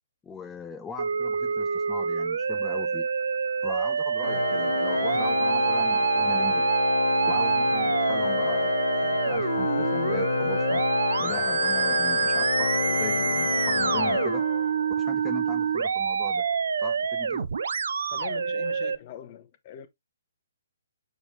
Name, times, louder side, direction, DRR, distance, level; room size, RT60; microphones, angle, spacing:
voice 1, 0.2-3.1 3.6-6.7 7.3-8.7 9.0-10.8 11.2-14.4 15.0-16.5 16.8-17.5, left 6 dB, 10° left, 0.5 m, -40 dB
Musical instrument, 1.0-19.0, right 5 dB, 60° right, 0.5 m, -26 dB
Organ, 4.2-15.0, left 5 dB, 65° left, 0.6 m, -29 dB
voice 2, 18.1-19.9, left 10 dB, 35° left, 1.1 m, -42 dB
6.6 x 4.9 x 3.0 m
figure-of-eight pair, 130°, 0 cm